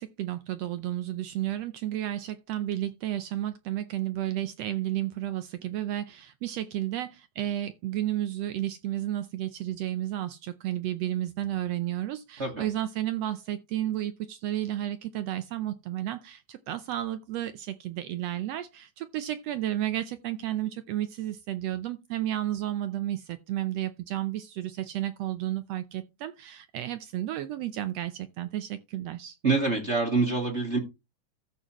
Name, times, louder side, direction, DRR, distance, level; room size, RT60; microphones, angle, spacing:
voice 1, 0.0-29.4, right 13 dB, 80° right, 1.4 m, -32 dB
voice 2, 29.4-30.8, right 3 dB, 30° right, 1.3 m, -25 dB
14.0 x 6.8 x 2.9 m
omnidirectional pair, 3.6 m